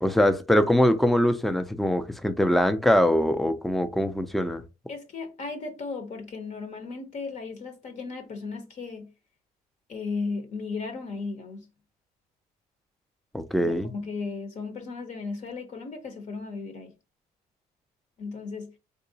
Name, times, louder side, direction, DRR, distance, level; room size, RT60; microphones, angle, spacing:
voice 1, 0.0-4.6 13.3-13.9, left 1 dB, ahead, 0.4 m, -23 dB
voice 2, 4.9-9.1 9.9-11.7 13.6-16.9 18.2-18.7, left 4 dB, 45° left, 0.7 m, -35 dB
3.7 x 2.9 x 2.7 m
cardioid pair, 110°, 17 cm